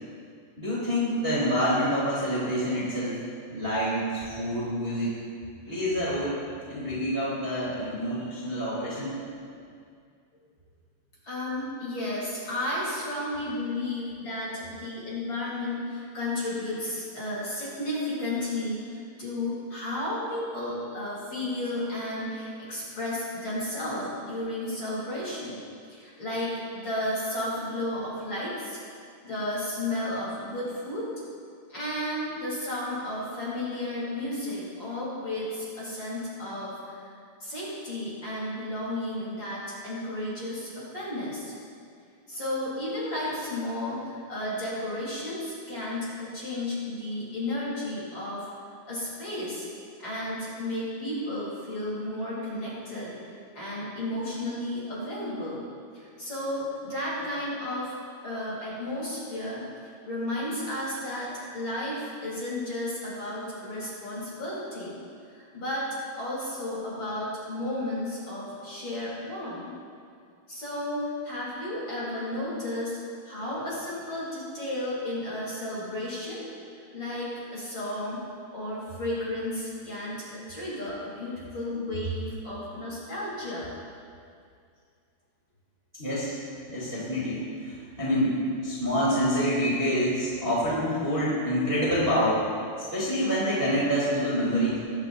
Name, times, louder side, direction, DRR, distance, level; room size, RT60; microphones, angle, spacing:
voice 1, 0.6-3.2 3.5-5.1 5.7-6.4 6.7-9.1 86.0-86.4 86.7-92.4 92.9-94.8, equal, 15° right, -9 dB, 3.2 m, -27 dB
voice 2, 11.2-25.6 25.9-28.8 29.2-31.1 31.7-37.0 37.4-41.5 42.3-48.5 48.9-49.7 50.0-53.1 53.5-55.7 55.9-57.9 58.2-59.6 60.0-65.0 65.3-69.8 70.5-73.0 73.2-76.5 76.9-78.2 78.5-83.8, left 1 dB, 30° left, -8 dB, 4.3 m, -33 dB
22.0 x 11.0 x 2.7 m, 2.3 s
omnidirectional pair, 4.5 m